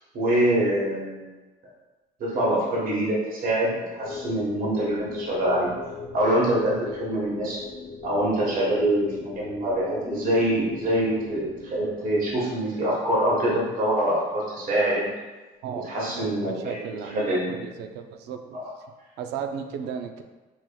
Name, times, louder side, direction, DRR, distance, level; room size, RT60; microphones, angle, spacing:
voice 1, 0.1-1.3 2.2-5.7 6.1-7.6 8.0-15.1 15.8-17.7 18.5-18.6, right 1 dB, 55° right, -5 dB, 1.3 m, -25 dB
sound 1, 4.0-12.4, left 4 dB, 40° left, 0.5 m, -39 dB
voice 2, 15.6-18.6 19.2-20.2, right 7 dB, 85° right, 6 dB, 0.4 m, -35 dB
5.4 x 3.0 x 2.3 m, 1.2 s
cardioid pair, 110°, 17 cm